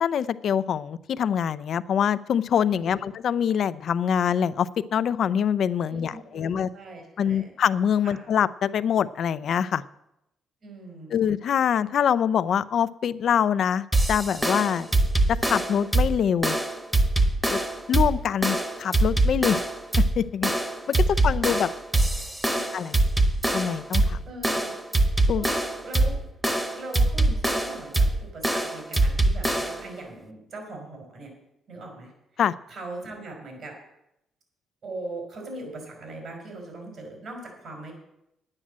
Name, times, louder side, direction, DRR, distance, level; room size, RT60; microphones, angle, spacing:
voice 1, 0.0-6.7 7.2-9.8 11.1-14.9 15.3-16.6 17.5-17.6 17.9-19.6 20.2-20.5 21.1-21.7 22.7-22.9 23.5-24.2 25.3-25.4 32.4-32.5, left 8 dB, 65° left, 15 dB, 0.5 m, -24 dB
voice 2, 2.7-3.0 5.9-7.5 8.0-8.2 10.6-11.2 22.5-22.6 24.2-24.7 25.4-26.2 26.7-31.3 31.7-32.1 32.7-33.7 34.8-37.9, right 2 dB, 60° right, 1 dB, 4.0 m, -40 dB
sound 1, 13.9-29.9, right 2 dB, 10° right, 1.1 m, -23 dB
9.9 x 8.7 x 7.4 m, 0.84 s
cardioid pair, 90°, 0 cm